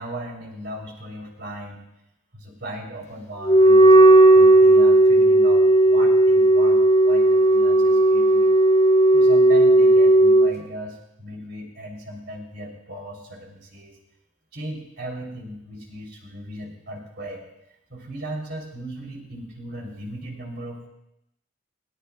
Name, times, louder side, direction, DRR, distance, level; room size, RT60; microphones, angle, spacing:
voice 1, 0.0-1.9 2.3-8.5 9.1-14.0 14.5-17.4 17.9-20.9, right 1 dB, 55° right, 0 dB, 3.8 m, -37 dB
Wind instrument woodwind instrument, 3.4-10.5, right 1 dB, 30° left, 1.4 m, -14 dB
21.0 x 18.5 x 2.5 m, 0.84 s
head